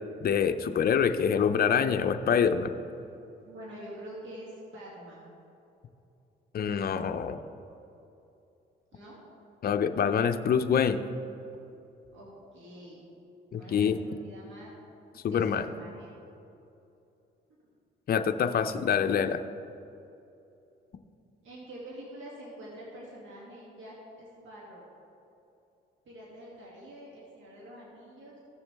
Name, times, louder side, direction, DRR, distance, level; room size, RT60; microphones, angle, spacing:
voice 1, 0.2-2.7 6.5-7.4 9.6-11.0 13.5-14.0 15.2-15.6 18.1-19.4, left 7 dB, 50° left, 8 dB, 0.6 m, -25 dB
voice 2, 3.4-5.3 8.9-9.2 12.1-13.0 13.6-14.7 15.1-16.1 18.8-19.2 21.4-24.8 26.0-28.4, right 1 dB, 75° right, -6 dB, 2.4 m, -46 dB
16.0 x 7.0 x 3.5 m, 2.8 s
cardioid pair, 90°, 20 cm